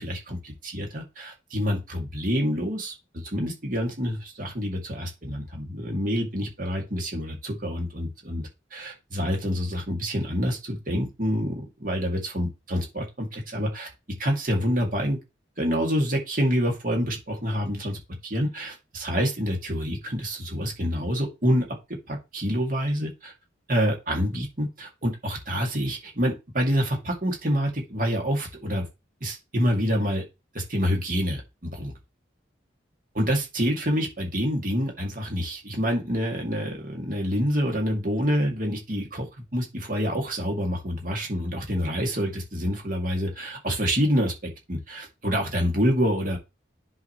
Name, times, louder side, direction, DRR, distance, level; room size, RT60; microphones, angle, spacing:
voice 1, 0.0-13.9 14.2-15.2 15.6-21.7 22.1-23.3 23.7-28.8 29.2-30.2 30.5-31.4 31.7-31.9 33.1-46.4, equal, 45° right, 1 dB, 2.5 m, -27 dB
10.5 x 5.1 x 3.2 m, 0.25 s
head